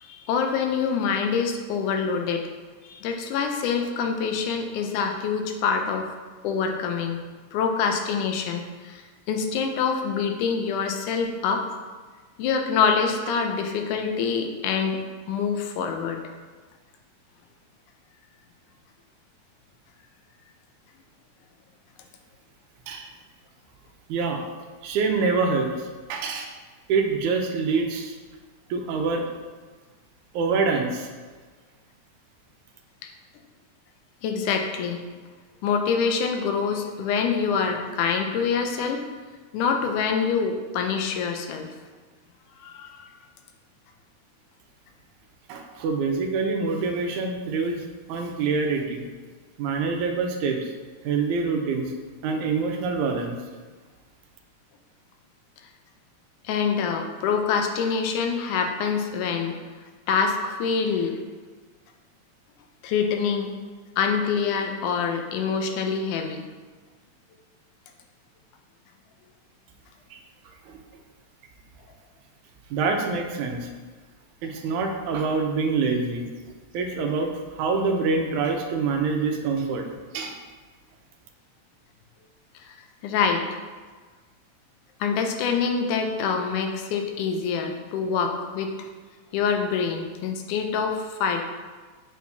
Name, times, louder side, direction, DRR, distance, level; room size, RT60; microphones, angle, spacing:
voice 1, 0.0-2.4 2.8-6.1 6.4-7.2 7.5-11.6 12.4-15.0 15.3-16.2 34.2-35.0 35.6-39.0 39.5-41.7 42.6-43.0 56.4-59.6 60.1-61.2 62.8-63.6 64.0-66.4 82.7-82.8 83.0-83.5 85.0-88.7 89.3-91.4, left 6 dB, 90° left, 4 dB, 2.2 m, -25 dB
voice 2, 24.1-24.4 24.8-26.6 26.9-28.2 28.7-29.3 30.3-31.1 45.5-49.1 49.6-50.7 51.0-51.9 52.2-53.4 70.1-70.2 70.7-70.8 72.7-73.7 74.4-76.3 76.7-79.8 80.1-80.4, right 4 dB, 80° right, 3 dB, 2.1 m, -26 dB
8.6 x 4.6 x 2.7 m, 1.4 s
omnidirectional pair, 3.5 m